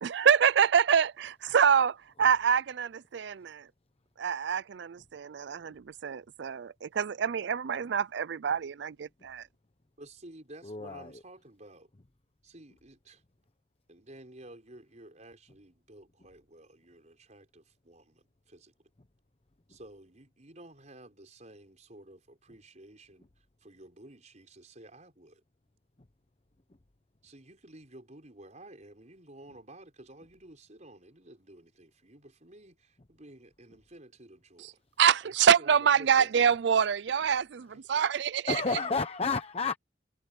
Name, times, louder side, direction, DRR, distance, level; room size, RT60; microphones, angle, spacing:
voice 1, 0.0-3.7 4.2-9.5 35.0-38.6, right 7 dB, 65° right, 0.4 m, -26 dB
voice 2, 10.0-11.9 12.4-13.2 13.9-18.7 19.7-25.4 27.2-34.8 35.2-36.3 37.7-37.8, right 1 dB, 40° right, 5.4 m, -52 dB
voice 3, 10.6-11.2 38.5-39.8, left 4 dB, 35° left, 0.9 m, -31 dB
head